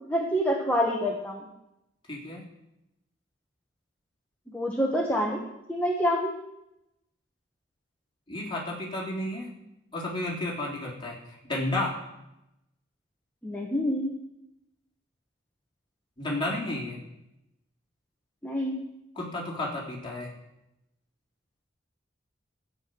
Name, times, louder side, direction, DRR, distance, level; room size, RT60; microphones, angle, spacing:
voice 1, 0.0-1.5 4.5-5.4 5.7-6.3 13.4-14.1 18.4-18.8, equal, 10° left, -2 dB, 1.4 m, -27 dB
voice 2, 2.1-2.4 8.3-9.5 9.9-12.0 16.2-17.0 19.1-20.3, left 1 dB, 25° left, -3 dB, 3.2 m, -32 dB
13.5 x 9.1 x 6.2 m, 0.88 s
head